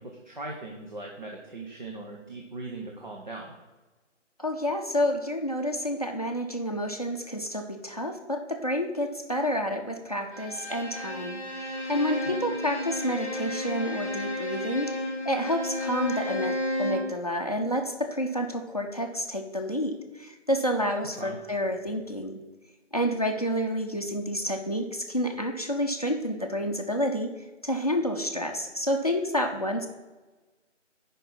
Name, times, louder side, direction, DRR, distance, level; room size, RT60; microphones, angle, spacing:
voice 1, 0.0-3.5 12.3-12.4 21.2-21.4, right 2 dB, 40° right, 0 dB, 0.8 m, -39 dB
voice 2, 4.4-11.4 11.9-14.9 15.2-22.4 22.9-27.3 27.6-29.9, equal, 30° left, 4 dB, 0.6 m, -29 dB
Bowed string instrument, 10.3-17.1, left 1 dB, 10° right, 1.8 m, -32 dB
6.8 x 5.3 x 5.7 m, 1.2 s
figure-of-eight pair, 180°, 37 cm